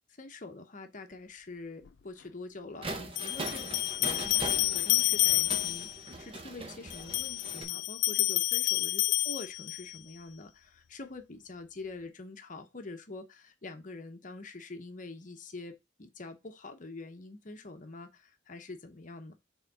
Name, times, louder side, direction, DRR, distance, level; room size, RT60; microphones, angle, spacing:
voice 1, 0.2-19.3, left 3 dB, 45° left, 0.9 m, -45 dB
sound 1, 1.9-2.0 3.2-6.0 6.9-10.0, left 15 dB, 75° left, 0.4 m, -29 dB
sound 2, 2.8-7.6, right 2 dB, 30° right, 0.9 m, -41 dB
4.8 x 3.7 x 5.4 m
head